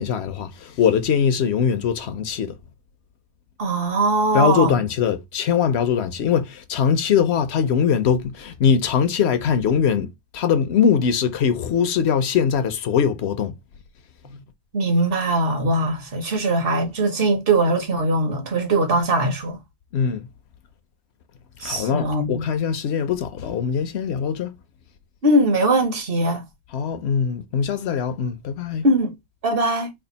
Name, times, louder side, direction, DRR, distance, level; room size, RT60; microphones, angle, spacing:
voice 1, 0.0-2.6 4.3-13.5 19.9-20.3 21.6-24.5 26.7-28.9, left 7 dB, 75° left, 0.9 m, -21 dB
voice 2, 3.6-4.7 14.7-19.6 21.6-22.5 25.2-26.4 28.8-29.1 29.4-29.9, right 2 dB, 55° right, 1.2 m, -21 dB
3.4 x 2.4 x 3.9 m
omnidirectional pair, 1.1 m